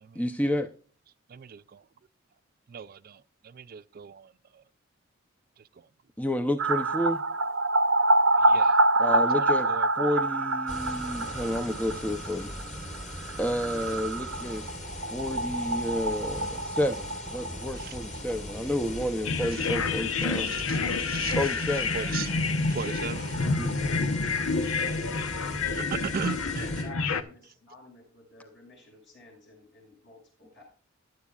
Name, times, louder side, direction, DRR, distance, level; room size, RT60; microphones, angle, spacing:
voice 1, 0.2-0.7 6.2-7.2 9.0-9.7 10.0-12.5 13.4-14.7 15.1-20.5 21.3-21.9 23.6-23.7, left 1 dB, 5° left, 0.6 m, -30 dB
voice 2, 1.3-1.8 2.7-4.6 8.4-8.8 9.1-9.9 17.8-17.9 19.6-19.7 20.4-21.4 21.9-23.6 25.7-26.8, right 6 dB, 45° right, 0.4 m, -38 dB
sound 1, 6.6-18.2 18.5-18.6 18.8-18.9 22.0-22.1 22.3-22.4 22.6-24.4 24.7-24.8, right 2 dB, 75° right, 0.8 m, -27 dB
sound 2, 10.7-26.8, left 1 dB, 35° left, 3.2 m, -40 dB
sound 3, 19.2-27.2, left 4 dB, 80° left, 0.9 m, -29 dB
voice 3, 26.1-30.6, left 2 dB, 55° left, 6.1 m, -51 dB
15.5 x 10.5 x 2.4 m
head